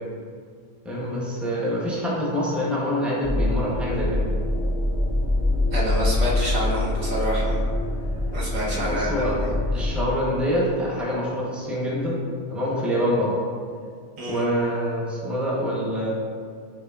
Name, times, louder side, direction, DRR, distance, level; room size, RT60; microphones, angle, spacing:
voice 1, 0.8-4.2 8.6-9.3 9.7-12.2 12.5-13.3 14.3-16.1, equal, ahead, -6 dB, 0.6 m, -26 dB
sound 1, 3.2-10.1, left 1 dB, 60° left, 0.3 m, -24 dB
voice 2, 5.7-7.6 8.3-9.5 9.8-9.9 14.2-14.4, equal, 60° right, -6 dB, 1.5 m, -28 dB
6.5 x 3.4 x 2.4 m, 2.1 s
omnidirectional pair, 1.6 m